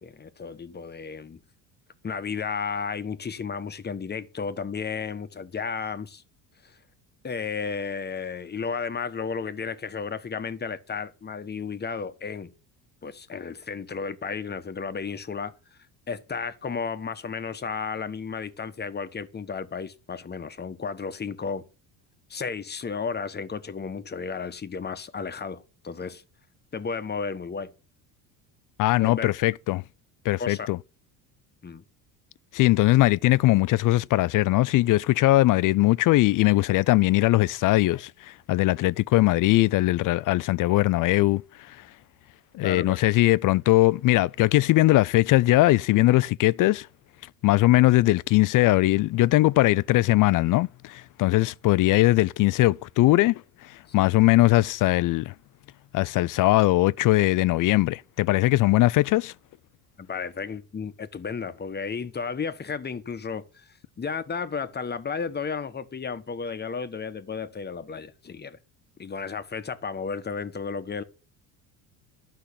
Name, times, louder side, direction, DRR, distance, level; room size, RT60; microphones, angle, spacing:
voice 1, 0.0-1.4 2.0-6.2 6.6-6.8 7.2-12.5 13.0-15.5 16.1-21.7 22.3-26.2 26.7-27.7 29.0-29.3 30.4-30.7 31.6-31.8 42.6-43.0 60.0-68.6 69.0-71.0, left 5 dB, 25° left, 1.2 m, -33 dB
voice 2, 28.8-29.8 30.2-30.8 32.5-41.4 41.7-41.8 42.5-46.9 47.4-55.3 55.9-59.3, left 17 dB, 50° left, 0.5 m, -20 dB
12.0 x 5.7 x 8.5 m
supercardioid pair, 95°, 40 cm